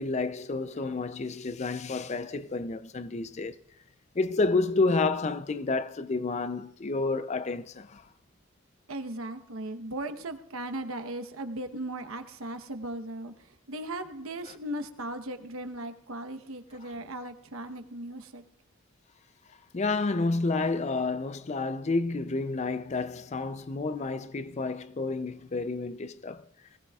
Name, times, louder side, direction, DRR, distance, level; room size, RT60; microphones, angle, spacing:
voice 1, 0.0-3.6 4.1-8.1 16.8-16.9 19.7-26.5, left 3 dB, 35° left, 0.5 m, -30 dB
voice 2, 8.9-18.4, right 1 dB, 85° right, 1.0 m, -37 dB
19.5 x 16.5 x 2.4 m
head